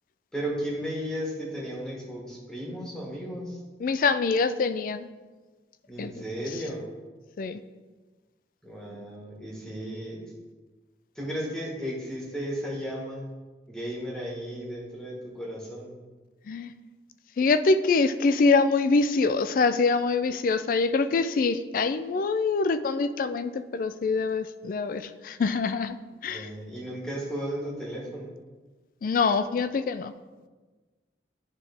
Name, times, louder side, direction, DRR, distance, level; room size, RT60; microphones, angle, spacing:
voice 1, 0.3-3.6 5.9-6.9 8.6-10.3 11.1-13.3 13.7-15.9 26.3-28.3, equal, 5° left, -4 dB, 1.3 m, -34 dB
voice 2, 3.8-5.1 6.0-6.1 7.4-7.6 16.5-16.7 17.4-26.0 26.2-26.5 29.0-30.1, left 4 dB, 50° left, 12 dB, 0.3 m, -24 dB
10.5 x 3.6 x 3.4 m, 1.3 s
head